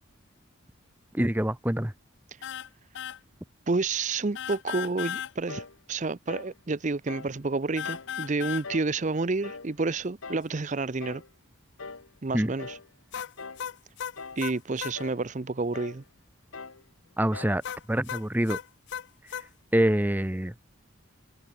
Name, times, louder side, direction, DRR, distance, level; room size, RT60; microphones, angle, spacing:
voice 1, 1.1-1.9 12.3-12.5 17.2-17.6 17.9-18.6 19.7-20.5, right 1 dB, 10° right, 0.8 m, -25 dB
sound 1, 2.4-2.7 2.9-3.2 4.3-5.3 7.8-8.7 13.1-15.0 17.6-19.5, left 9 dB, 55° left, 0.4 m, -35 dB
voice 2, 3.7-11.2 12.2-12.8 14.4-16.0, right 3 dB, 35° right, 0.6 m, -29 dB
sound 2, 5.5-5.8 6.3-6.6 7.1-7.4 7.8-8.1 8.6-9.0 9.4-9.7 10.2-10.5 11.0-11.3 11.8-12.1 12.6-12.9 13.4-13.7 14.2-14.5 15.0-15.2 15.7-16.0 16.5-16.8 17.3-17.6, left 4 dB, 75° left, 1.5 m, -42 dB
head